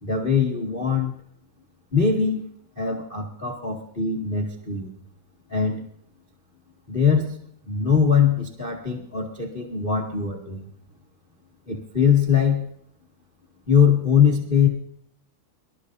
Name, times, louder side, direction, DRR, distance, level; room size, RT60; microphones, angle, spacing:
voice 1, 0.0-1.1 1.9-2.4 2.7-4.9 5.5-5.8 6.9-7.4 7.7-10.6 11.7-12.6 13.7-14.7, left 7 dB, 80° left, 0 dB, 0.4 m, -21 dB
25.0 x 13.5 x 2.7 m, 0.66 s
omnidirectional pair, 4.7 m